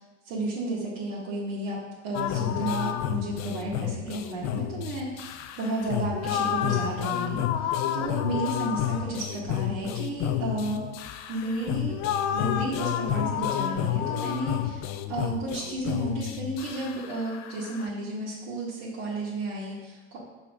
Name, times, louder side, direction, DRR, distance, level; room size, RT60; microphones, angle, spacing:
voice 1, 0.2-10.8 11.3-12.0 12.3-20.2, right 2 dB, 65° right, -8 dB, 2.0 m, -32 dB
sound 1, 2.1-17.9, left 10 dB, 50° left, 0.6 m, -30 dB
5.7 x 4.1 x 6.2 m, 1.2 s
supercardioid pair, 105°, 35 cm